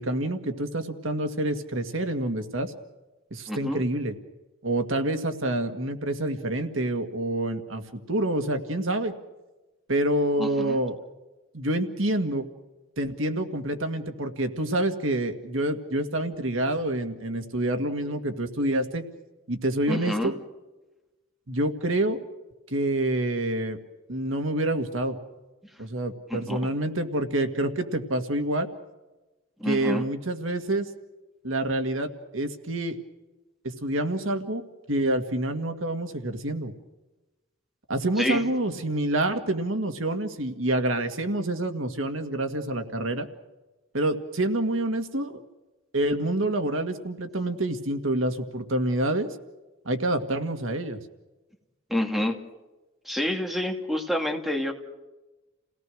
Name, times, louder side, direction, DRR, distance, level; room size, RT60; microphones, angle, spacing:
voice 1, 0.0-2.7 3.3-4.1 4.6-9.1 9.9-11.0 11.5-12.5 13.0-19.0 19.5-20.3 21.5-22.2 22.7-23.8 24.1-25.2 25.8-28.7 29.6-30.9 31.4-33.0 33.6-34.6 34.9-36.7 37.9-43.3 43.9-45.4 45.9-49.4 49.9-51.0, right 1 dB, 85° right, 6 dB, 2.1 m, -27 dB
voice 2, 3.5-3.8 10.4-10.8 19.9-20.3 26.3-26.6 29.6-30.0 38.2-38.4 51.9-52.4 53.0-54.7, left 1 dB, ahead, 3 dB, 2.4 m, -28 dB
29.5 x 18.0 x 6.4 m, 1.1 s
head